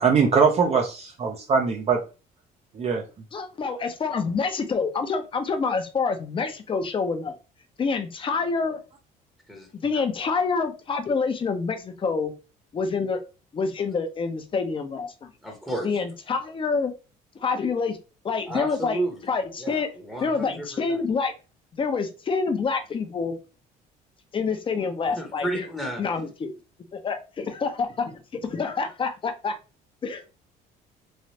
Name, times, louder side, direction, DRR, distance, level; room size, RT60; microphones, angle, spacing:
voice 1, 0.0-2.0 2.7-3.0, right 5 dB, 35° right, 1 dB, 0.6 m, -21 dB
voice 2, 3.3-7.3 7.8-8.8 9.8-12.3 12.7-13.2 13.5-15.3 15.8-16.9 17.4-18.0 18.2-19.0 19.3-19.9 20.2-21.3 21.8-23.4 24.3-25.6 26.0-26.5 26.9-29.5 30.0-30.3, left 4 dB, 30° left, 7 dB, 0.6 m, -27 dB
voice 3, 9.5-10.0 15.4-15.9 18.4-19.3 19.6-21.0 25.1-26.0, right 1 dB, ahead, 1 dB, 0.9 m, -32 dB
3.1 x 2.4 x 2.8 m, 0.31 s
cardioid pair, 110°, 17 cm